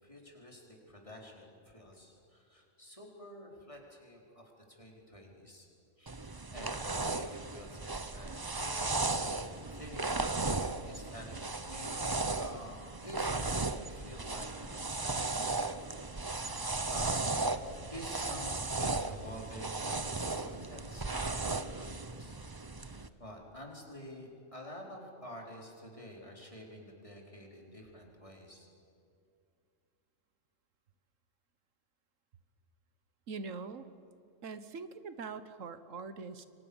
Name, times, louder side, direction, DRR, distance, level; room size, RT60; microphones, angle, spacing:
voice 1, 0.0-5.7 6.0-9.3 9.7-11.4 11.6-16.1 16.9-17.5 17.8-22.4 22.8-28.7, left 1 dB, 25° left, -1 dB, 4.7 m, -49 dB
sound 1, 6.1-23.1, right 3 dB, 20° right, 0.8 m, -36 dB
voice 2, 33.3-33.9 34.4-36.5, right 4 dB, 85° right, 12 dB, 1.6 m, -43 dB
29.5 x 24.0 x 7.2 m, 2.5 s
omnidirectional pair, 1.3 m